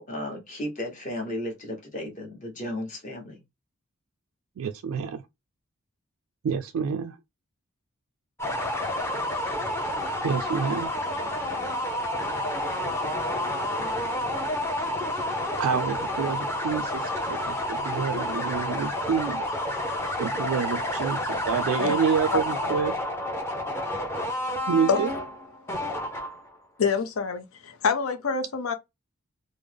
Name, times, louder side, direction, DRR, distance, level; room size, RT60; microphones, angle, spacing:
voice 1, 0.0-3.4, left 1 dB, 35° left, 1.0 m, -34 dB
voice 2, 4.6-5.2 6.4-7.1 10.2-10.9 15.6-19.4 20.2-22.9 24.7-25.1, right 6 dB, 85° right, 0.3 m, -28 dB
sound 1, 8.4-26.5, left 1 dB, 10° left, 0.6 m, -29 dB
voice 3, 22.3-22.7 24.9-25.0 26.8-28.7, left 5 dB, 80° left, 0.5 m, -26 dB
3.4 x 2.0 x 3.3 m
head